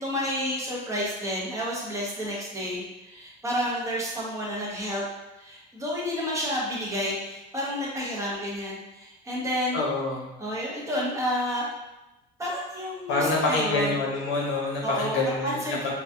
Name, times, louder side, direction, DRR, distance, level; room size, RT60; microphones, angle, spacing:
voice 1, 0.0-5.0 5.4-9.8 10.4-11.7 12.4-13.9 14.8-15.9, equal, 15° right, -5 dB, 0.9 m, -30 dB
voice 2, 9.7-10.3 13.1-15.9, left 2 dB, 85° left, -3 dB, 1.0 m, -26 dB
3.9 x 2.4 x 2.6 m, 0.99 s
cardioid pair, 125°, 19 cm